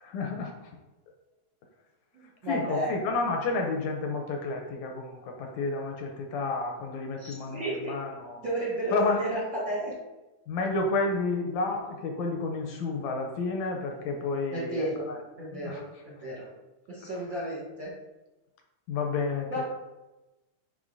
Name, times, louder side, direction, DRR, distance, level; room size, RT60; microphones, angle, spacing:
voice 1, 0.0-0.5 2.4-8.5 8.9-9.2 10.5-15.2 15.5-15.8 17.0-17.1 18.9-19.6, left 3 dB, 75° left, 2 dB, 1.8 m, -31 dB
voice 2, 2.1-2.9 7.2-7.9 8.4-9.9 14.5-15.1 15.4-16.5 16.9-17.9 19.5-19.6, right 1 dB, 60° right, -7 dB, 1.3 m, -32 dB
9.9 x 3.7 x 2.6 m, 1.1 s
omnidirectional pair, 3.6 m